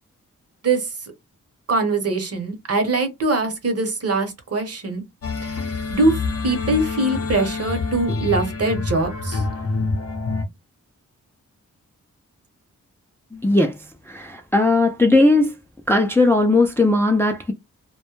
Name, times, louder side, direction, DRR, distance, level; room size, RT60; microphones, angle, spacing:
voice 1, 0.6-1.1 1.7-5.0 5.4-9.4, right 2 dB, 50° right, 0.9 m, -23 dB
sound 1, 5.2-10.4, left 4 dB, 50° left, 0.6 m, -26 dB
voice 2, 13.3-13.8 14.1-15.5 15.9-17.5, left 2 dB, 10° left, 0.3 m, -17 dB
2.2 x 2.0 x 3.0 m
wide cardioid pair, 85°, 31 cm